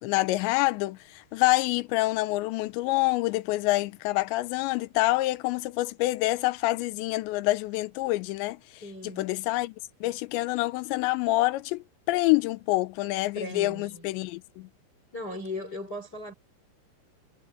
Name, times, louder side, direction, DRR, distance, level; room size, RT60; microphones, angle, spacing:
voice 1, 0.0-8.6 9.2-9.7 10.0-14.7, left 19 dB, 80° left, 2.8 m, -27 dB
voice 2, 8.8-9.3 13.3-14.1 15.1-16.3, left 1 dB, 20° left, 6.0 m, -37 dB
omnidirectional pair, 5.6 m